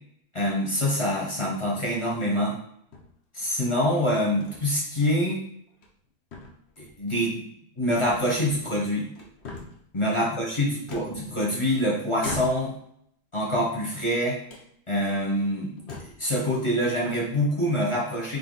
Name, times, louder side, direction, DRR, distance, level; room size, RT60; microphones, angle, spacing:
voice 1, 0.3-2.6 3.3-5.4 6.8-7.4 7.7-9.1 9.9-12.8 13.3-14.4 14.9-18.4, equal, 20° left, -4 dB, 0.9 m, -25 dB
sound 1, 1.7-2.1 2.9-3.7 4.4-4.6 5.0-5.2 5.7-6.1 6.3-7.0 8.1-8.8 9.1-9.9 10.9-11.7 12.2-12.9 13.4-14.1 14.5-14.7 15.3-15.4 15.8-16.3, left 3 dB, 50° left, 0.8 m, -41 dB
3.5 x 2.8 x 4.0 m, 0.67 s
omnidirectional pair, 1.8 m